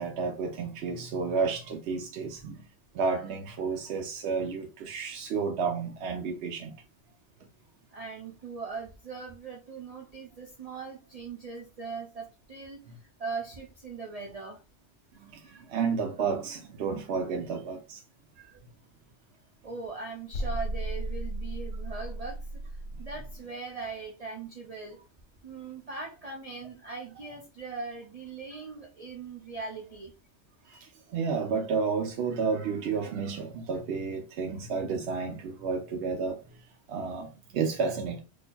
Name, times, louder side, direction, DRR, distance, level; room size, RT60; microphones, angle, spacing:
voice 1, 0.0-2.6 2.9-6.7 15.3-18.0 30.7-36.4 36.9-38.2, right 5 dB, 70° right, 0.8 m, -31 dB
voice 2, 7.9-12.8 13.2-14.6 19.6-22.6 23.0-25.0 25.4-30.1, right 4 dB, 45° right, 0.5 m, -40 dB
sound 1, 20.3-23.4, right 1 dB, 75° left, 0.9 m, -35 dB
4.2 x 2.6 x 2.2 m
omnidirectional pair, 1.2 m